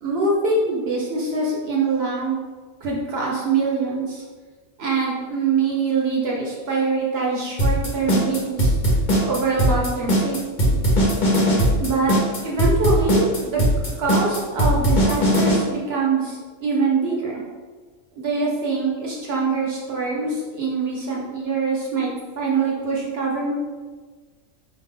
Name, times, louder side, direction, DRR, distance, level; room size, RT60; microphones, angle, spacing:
voice 1, 0.0-2.4 2.8-4.2 4.8-8.7 9.2-10.8 11.8-12.1 12.4-13.6 14.0-17.4 18.2-23.5, right 4 dB, 55° right, -3 dB, 0.9 m, -24 dB
sound 1, 7.6-15.6, equal, 40° left, 1.0 m, -19 dB
4.6 x 2.8 x 3.7 m, 1.4 s
omnidirectional pair, 1.4 m